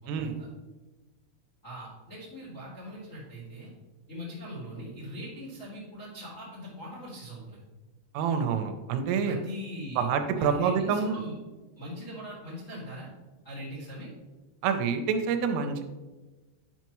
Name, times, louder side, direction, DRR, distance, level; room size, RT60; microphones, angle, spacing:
voice 1, 0.0-0.5 1.6-3.7 4.1-7.6 9.2-11.3 11.8-13.1 13.4-14.1, equal, 40° left, -7 dB, 1.0 m, -41 dB
voice 2, 8.1-9.4 10.0-11.2 14.6-15.8, right 6 dB, 85° right, 7 dB, 3.2 m, -27 dB
10.5 x 5.8 x 3.1 m, 1.2 s
omnidirectional pair, 5.7 m